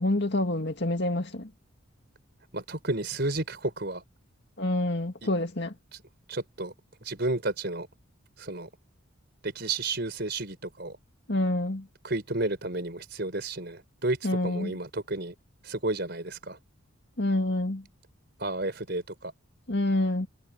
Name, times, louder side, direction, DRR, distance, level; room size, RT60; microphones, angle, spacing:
voice 1, 0.0-1.5 4.6-5.7 11.3-11.8 14.2-14.7 17.2-17.8 19.7-20.3, left 1 dB, 55° left, 2.3 m, -27 dB
voice 2, 2.5-4.0 6.3-6.7 7.0-7.9 8.4-8.7 9.4-10.9 12.0-14.2 14.4-15.3 15.6-16.6 18.4-19.3, right 2 dB, 50° right, 4.8 m, -31 dB
head